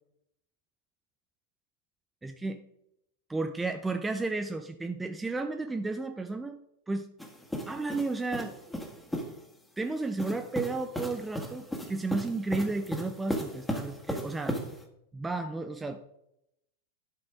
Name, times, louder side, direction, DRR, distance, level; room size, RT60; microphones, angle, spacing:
voice 1, 2.2-2.6 3.3-6.6 6.9-7.1 7.7-8.5 9.8-14.6 15.1-16.0, right 3 dB, 10° right, 7 dB, 0.7 m, -33 dB
sound 1, 7.2-9.4 10.2-14.8, equal, 5° left, 1.9 m, -36 dB
11.5 x 6.0 x 5.0 m, 0.79 s
figure-of-eight pair, 90°, 0 cm